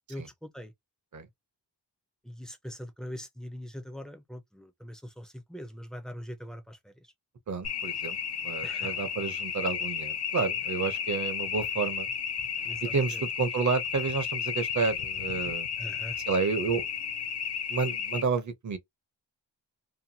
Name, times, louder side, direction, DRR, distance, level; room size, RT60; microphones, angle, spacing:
voice 1, 0.1-0.7 2.2-6.9 8.6-8.9 12.6-13.2 15.8-16.2, equal, ahead, 0.4 m, -42 dB
voice 2, 7.5-8.2 8.4-12.1 12.9-15.7 16.3-16.8 17.7-18.8, right 5 dB, 40° right, 0.6 m, -30 dB
sound 1, 7.6-18.2, left 7 dB, 65° left, 0.5 m, -33 dB
2.8 x 2.2 x 2.6 m
wide cardioid pair, 165°, 44 cm